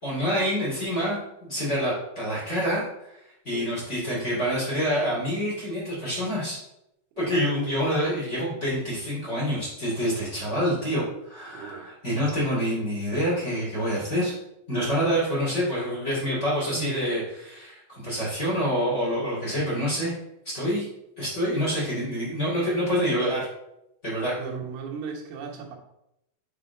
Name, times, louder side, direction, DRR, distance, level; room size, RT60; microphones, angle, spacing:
voice 1, 0.0-3.2 3.4-6.6 7.2-14.3 14.7-20.1 20.5-20.9 21.2-23.4 24.0-24.3, equal, 25° left, -6 dB, 1.5 m, -27 dB
voice 2, 7.3-7.8 11.5-11.9 16.7-17.0 24.4-25.8, right 6 dB, 75° right, -1 dB, 3.6 m, -36 dB
8.2 x 3.7 x 4.4 m, 0.83 s
omnidirectional pair, 5.7 m